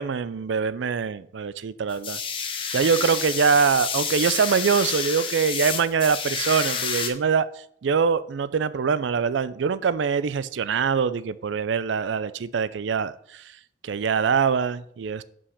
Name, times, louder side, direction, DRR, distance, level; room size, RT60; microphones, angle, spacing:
voice 1, 0.0-2.2 2.7-7.5 7.8-13.1 13.8-15.2, right 6 dB, 85° right, 16 dB, 0.4 m, -23 dB
sound 1, 1.9-7.1, left 6 dB, 30° left, 0.8 m, -29 dB
5.7 x 5.4 x 6.4 m, 0.68 s
head